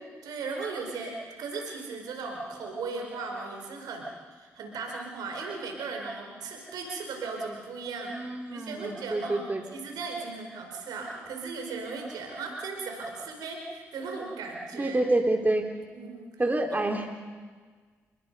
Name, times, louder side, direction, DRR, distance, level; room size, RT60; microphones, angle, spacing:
voice 1, 0.2-8.2 8.5-9.4 9.7-15.0 15.9-16.3 16.7-16.9, right 4 dB, 75° right, 2 dB, 4.8 m, -37 dB
voice 2, 8.1-9.6 14.7-15.7 16.4-17.3, right 2 dB, 25° right, 3 dB, 3.3 m, -27 dB
29.5 x 20.5 x 5.5 m, 1.5 s
hypercardioid pair, 40°, 7 cm